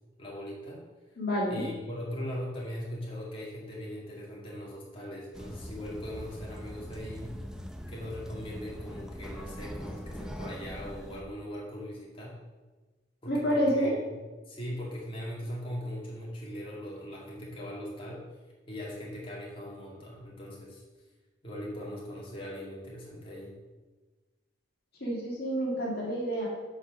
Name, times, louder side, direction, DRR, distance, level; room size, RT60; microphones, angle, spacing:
voice 1, 0.2-0.8 1.5-7.3 7.9-12.4 13.2-14.2 14.5-18.2 18.7-20.8 21.4-23.5, equal, 30° left, -5 dB, 2.2 m, -40 dB
voice 2, 1.2-1.7 13.3-13.9 25.0-26.5, equal, 55° left, -4 dB, 1.9 m, -28 dB
sound 1, 5.3-11.2, equal, 5° right, 0.5 m, -42 dB
8.4 x 4.7 x 6.1 m, 1.2 s
head